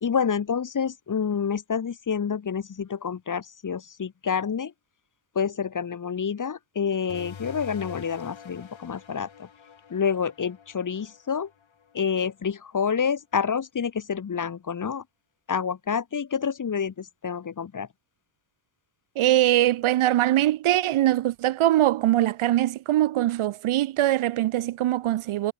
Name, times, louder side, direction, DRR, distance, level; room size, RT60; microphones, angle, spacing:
voice 1, 0.0-4.7 5.3-9.5 9.9-11.5 11.9-15.0 15.5-17.9, left 6 dB, 40° left, 1.0 m, -28 dB
sound 1, 7.1-12.3, left 7 dB, 65° left, 5.0 m, -45 dB
voice 2, 19.2-25.5, right 14 dB, 75° right, 0.6 m, -22 dB
wide cardioid pair, 170°, 50 cm